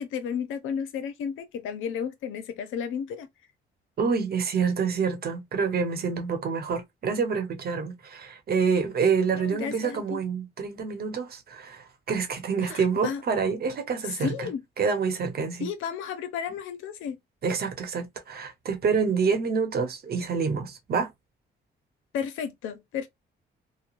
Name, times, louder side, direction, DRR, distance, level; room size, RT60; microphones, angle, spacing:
voice 1, 0.0-3.3 9.3-10.2 12.6-13.2 14.0-14.6 15.6-17.2 22.1-23.1, left 7 dB, 85° left, 0.7 m, -33 dB
voice 2, 4.0-14.5 14.8-15.7 17.4-21.1, right 5 dB, 50° right, 1.0 m, -27 dB
3.1 x 2.1 x 2.5 m
cardioid pair, 90°, 20 cm